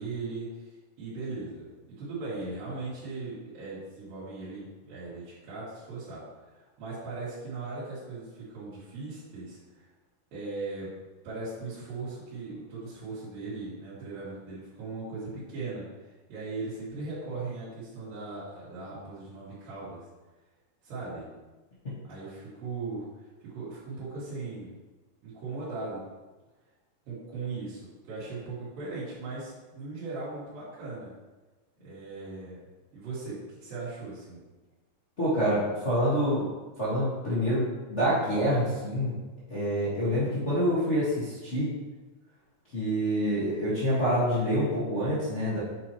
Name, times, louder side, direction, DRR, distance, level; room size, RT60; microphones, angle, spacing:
voice 1, 0.0-1.7 2.0-9.9 10.3-10.9 11.2-20.1 20.8-21.3 22.1-23.1 23.4-24.7 25.2-26.0 27.1-31.1 31.8-32.6 32.9-34.4, right 3 dB, 90° right, -12 dB, 3.6 m, -38 dB
voice 2, 35.2-36.4 36.8-39.2 39.5-41.7 42.7-45.6, equal, 75° left, -11 dB, 0.6 m, -27 dB
8.3 x 4.3 x 3.0 m, 1.2 s
omnidirectional pair, 4.0 m